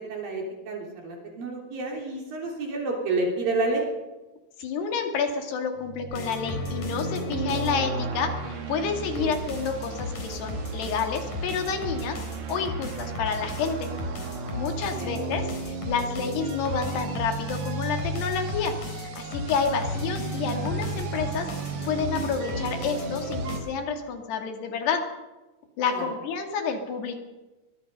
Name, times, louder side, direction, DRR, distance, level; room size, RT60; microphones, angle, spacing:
voice 1, 0.1-3.8 9.2-9.3 14.9-15.2 25.9-26.1, right 3 dB, 60° right, 0 dB, 4.9 m, -29 dB
voice 2, 4.6-12.2 12.5-13.9 14.5-21.5 21.8-25.1 25.8-27.2, left 5 dB, 85° left, 4 dB, 4.4 m, -29 dB
sound 1, 5.8-23.6, right 3 dB, 75° right, 4.3 m, -34 dB
sound 2, 6.1-23.6, left 2 dB, 50° left, 5.0 m, -37 dB
22.0 x 22.0 x 5.5 m, 1.1 s
omnidirectional pair, 4.6 m